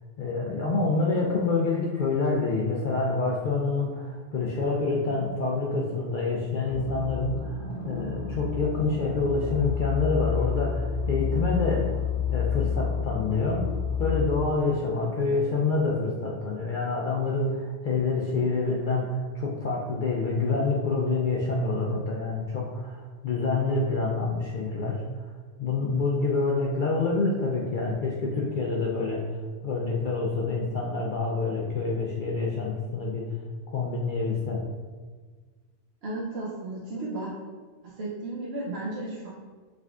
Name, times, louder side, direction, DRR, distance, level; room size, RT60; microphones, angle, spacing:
voice 1, 0.2-11.9 12.3-13.6 14.0-25.3 25.6-29.4 29.6-33.2 33.7-34.6, left 3 dB, 60° left, -3 dB, 0.5 m, -27 dB
sound 1, 6.7-14.2, left 6 dB, 30° left, 0.9 m, -30 dB
voice 2, 36.0-37.3 37.8-39.3, right 2 dB, 60° right, -5 dB, 0.9 m, -34 dB
4.8 x 3.6 x 2.3 m, 1.5 s
omnidirectional pair, 1.3 m